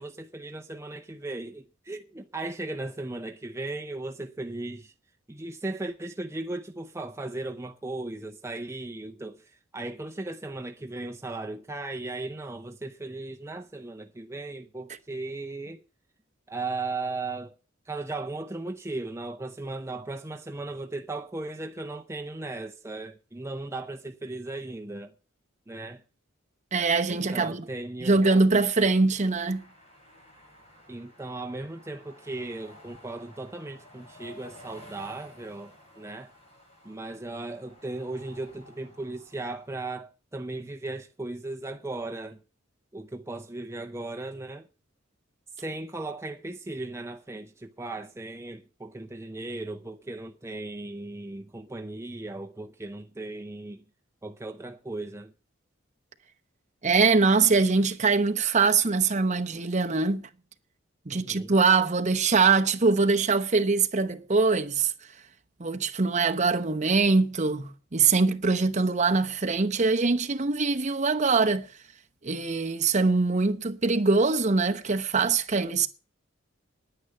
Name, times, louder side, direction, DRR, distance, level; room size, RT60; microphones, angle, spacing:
voice 1, 0.0-4.9 5.3-15.9 16.5-17.6 17.9-25.1 25.7-26.0 27.1-28.2 30.9-36.3 36.8-42.4 42.9-44.7 45.5-53.8 54.2-55.3 61.1-61.5, right 2 dB, 15° right, 0.6 m, -37 dB
voice 2, 26.7-27.6 28.0-29.6 56.8-60.2 61.1-64.9 65.6-71.7 72.2-75.9, right 4 dB, 35° right, 0.9 m, -23 dB
sound 1, 29.5-39.8, left 1 dB, 35° left, 8.0 m, -53 dB
10.0 x 9.7 x 6.8 m
head